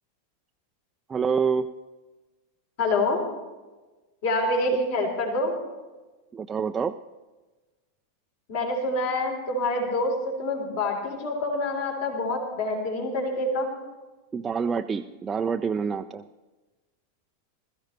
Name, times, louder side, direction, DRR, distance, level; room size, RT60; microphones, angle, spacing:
voice 1, 1.1-1.7 6.3-6.9 14.3-16.2, right 6 dB, 20° right, 6 dB, 0.4 m, -27 dB
voice 2, 2.8-3.3 4.2-5.6 8.5-13.7, left 2 dB, 50° left, 1 dB, 3.5 m, -26 dB
20.5 x 14.0 x 3.2 m, 1.2 s
figure-of-eight pair, 90°, 0 cm